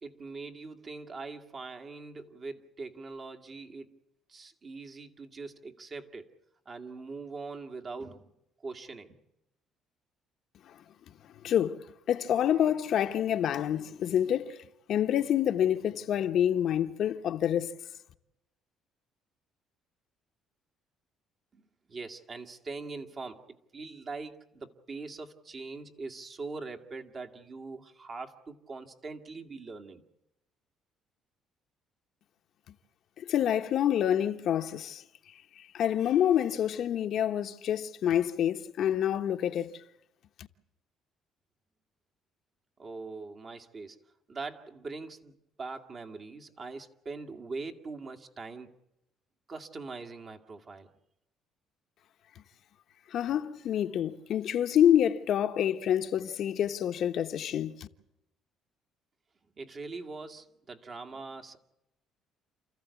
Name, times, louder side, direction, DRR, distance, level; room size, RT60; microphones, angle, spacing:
voice 1, 0.0-4.0 4.3-6.3 6.7-8.3 8.6-9.2 21.5-30.0 42.8-44.0 44.3-48.7 49.5-50.9 59.6-61.6, right 3 dB, 40° right, 2.0 m, -42 dB
voice 2, 11.4-14.6 14.9-17.7 33.2-35.0 35.6-39.8 53.1-57.9, left 10 dB, 60° left, 1.0 m, -27 dB
29.0 x 14.5 x 8.3 m
cardioid pair, 105°, 0 cm